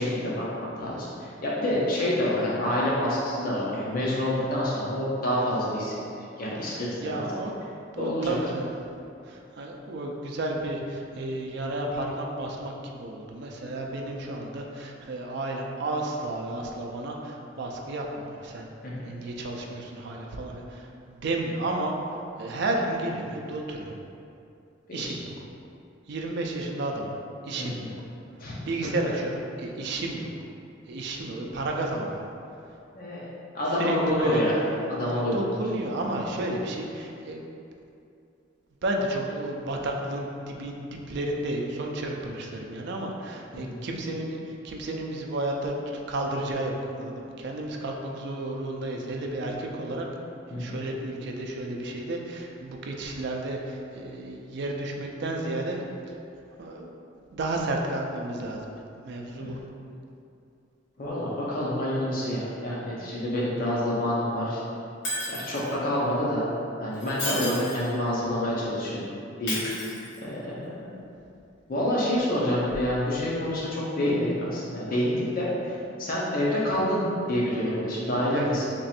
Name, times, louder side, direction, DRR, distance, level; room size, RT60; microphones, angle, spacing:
voice 1, 0.0-6.0 6.4-7.2 8.0-8.4 18.8-19.1 24.9-25.1 27.6-27.9 28.4-28.5 32.9-33.2 33.5-34.5 34.9-35.6 43.5-43.8 50.5-50.8 59.4-59.5 61.0-64.6 65.3-66.5 66.8-69.0 69.4-69.6 70.2-70.9 71.7-78.7, left 1 dB, 50° left, -6 dB, 0.7 m, -27 dB
voice 2, 6.6-7.5 8.0-8.6 9.2-18.7 19.0-21.9 22.4-24.0 24.9-25.3 26.1-27.2 27.4-27.9 28.7-30.3 30.9-32.3 33.7-34.4 35.1-37.4 38.8-50.1 50.6-55.8 56.5-56.9 57.3-59.6 73.3-73.4 78.3-78.7, right 2 dB, 60° right, 0 dB, 0.4 m, -32 dB
Shatter, 65.0-65.7 66.9-67.9 69.5-70.5 72.7-72.8, left 1 dB, 85° left, 1.4 m, -33 dB
3.0 x 2.5 x 4.2 m, 2.6 s
head